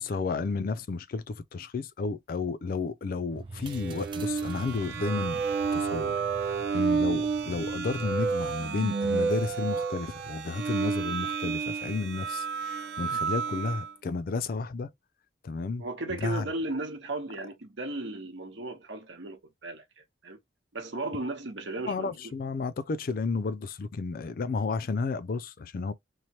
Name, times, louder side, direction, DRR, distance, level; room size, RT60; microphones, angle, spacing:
voice 1, 0.0-5.4 5.7-6.2 6.7-14.9 15.4-15.8 16.1-16.5 21.9-25.9, left 4 dB, 50° left, 0.4 m, -32 dB
sound 1, 3.3-8.3, right 3 dB, 25° right, 0.3 m, -44 dB
sound 2, 3.7-13.9, right 5 dB, 60° right, 0.6 m, -30 dB
voice 2, 15.8-20.4 20.7-22.3, right 2 dB, 75° right, 1.0 m, -36 dB
3.1 x 2.1 x 2.8 m
head